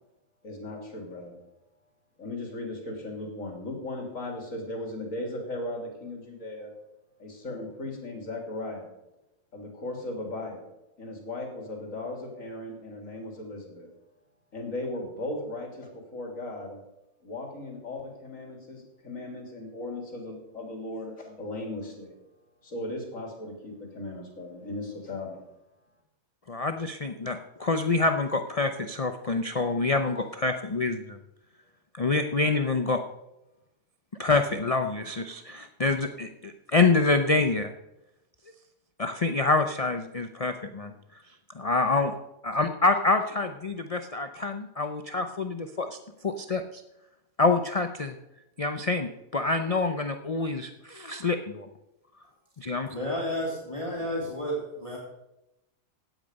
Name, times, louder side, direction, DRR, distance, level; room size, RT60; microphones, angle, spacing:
voice 1, 0.4-1.4 2.2-6.7 7.2-8.9 9.5-10.7 11.0-13.9 14.5-16.8 17.2-22.2 22.6-25.4, left 2 dB, 65° left, 1 dB, 3.4 m, -37 dB
voice 2, 26.5-31.2 31.9-33.0 34.2-37.7 39.0-40.9 41.5-42.1 42.4-46.0 46.2-46.8 47.4-48.1 48.6-51.7 52.6-52.9, left 3 dB, 35° left, 7 dB, 0.6 m, -26 dB
voice 3, 52.6-55.0, equal, 20° left, -5 dB, 3.3 m, -32 dB
16.5 x 9.2 x 5.3 m, 0.91 s
omnidirectional pair, 1.5 m